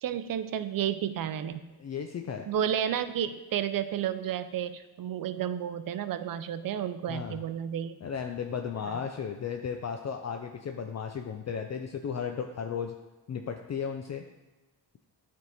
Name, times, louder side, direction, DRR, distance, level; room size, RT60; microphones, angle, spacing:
voice 1, 0.0-1.6 2.5-8.0 8.9-9.0, right 9 dB, 55° right, 12 dB, 0.5 m, -31 dB
voice 2, 1.8-2.5 7.1-7.4 8.0-12.9 13.3-14.2, left 7 dB, 40° left, 4 dB, 0.5 m, -35 dB
9.0 x 3.6 x 4.1 m, 1.1 s
cardioid pair, 95°, 41 cm